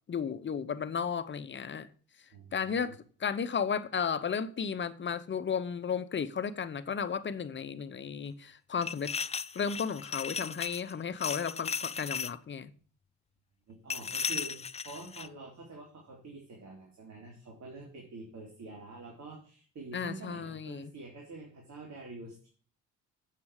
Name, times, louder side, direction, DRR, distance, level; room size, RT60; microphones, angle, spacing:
voice 1, 0.1-1.9 2.5-9.1 9.5-12.7 19.9-20.9, left 6 dB, 40° left, 0.8 m, -34 dB
voice 2, 2.3-2.9 13.7-22.5, right 3 dB, 60° right, 3.3 m, -47 dB
sound 1, 8.8-10.9 11.2-12.3 13.9-15.3, left 6 dB, 20° left, 0.4 m, -36 dB
8.5 x 7.5 x 4.8 m
cardioid pair, 90°, 30 cm